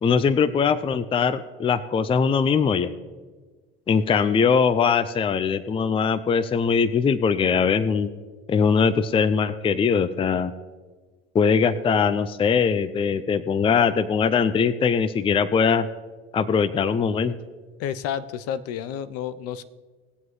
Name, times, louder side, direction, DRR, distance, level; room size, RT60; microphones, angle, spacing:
voice 1, 0.0-2.9 3.9-8.1 8.5-10.5 11.3-15.9 16.3-17.3, left 6 dB, 20° left, 15 dB, 0.5 m, -21 dB
voice 2, 17.8-19.6, left 9 dB, 55° left, 14 dB, 0.7 m, -30 dB
20.0 x 7.6 x 3.2 m, 1.4 s
supercardioid pair, 90°, 29 cm